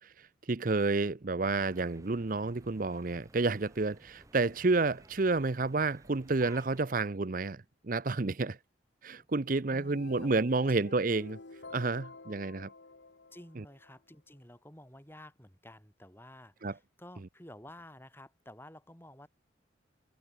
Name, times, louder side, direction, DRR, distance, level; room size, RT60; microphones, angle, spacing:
voice 1, 0.0-8.6 9.0-11.4 11.7-12.7 13.6-13.7 16.6-16.7, right 3 dB, 45° right, 0.7 m, -30 dB
sound 1, 1.4-6.8, right 1 dB, 15° right, 1.6 m, -57 dB
sound 2, 9.7-13.9, left 3 dB, 70° left, 1.4 m, -50 dB
voice 2, 9.7-10.4 10.8-10.9 13.3-19.3, left 1 dB, 10° left, 6.1 m, -52 dB
head